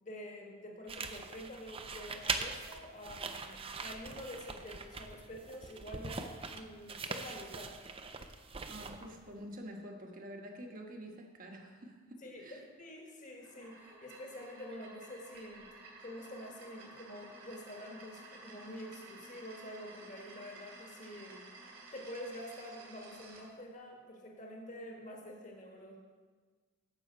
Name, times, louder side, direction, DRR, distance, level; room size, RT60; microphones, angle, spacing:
voice 1, 0.0-7.8 12.2-15.7 16.0-21.4 21.9-26.0, left 1 dB, 40° left, 0 dB, 1.4 m, -47 dB
sound 1, 0.9-9.2, right 4 dB, 30° right, 0.5 m, -42 dB
voice 2, 8.6-12.6, equal, 45° right, 2 dB, 1.2 m, -48 dB
sound 2, 13.3-23.4, right 2 dB, 75° right, 3.0 m, -53 dB
9.7 x 7.2 x 5.1 m, 1.5 s
head